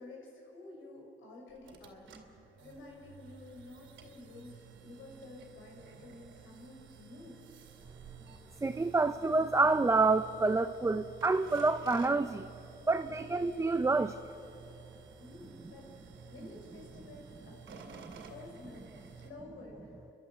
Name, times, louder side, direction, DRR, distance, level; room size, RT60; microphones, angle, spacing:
voice 1, 0.0-7.4 15.2-20.1, left 2 dB, 80° left, 0 dB, 5.9 m, -51 dB
sound 1, 1.5-19.3, right 6 dB, 75° right, 2.5 m, -54 dB
voice 2, 8.6-12.5 12.9-14.2, right 3 dB, 15° right, 10 dB, 0.6 m, -28 dB
29.0 x 11.5 x 9.5 m, 3.0 s
cardioid pair, 90°, 20 cm